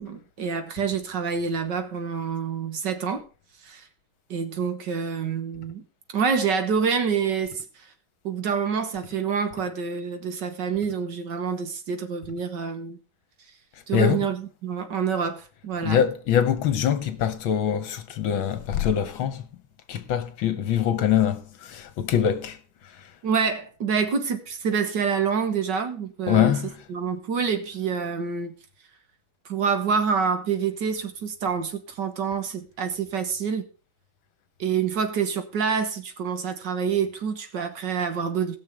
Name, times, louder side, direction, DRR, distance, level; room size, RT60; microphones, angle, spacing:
voice 1, 0.0-3.2 3.6-3.9 4.3-5.8 6.1-7.6 8.2-13.0 13.9-16.0 23.2-26.6 26.9-28.5 29.5-33.7 34.6-38.6, right 6 dB, 60° right, 1.8 m, -27 dB
voice 2, 15.8-19.5 19.9-21.4 21.7-22.6 26.3-26.7, left 9 dB, 70° left, 1.8 m, -23 dB
19.5 x 6.5 x 3.5 m
omnidirectional pair, 2.3 m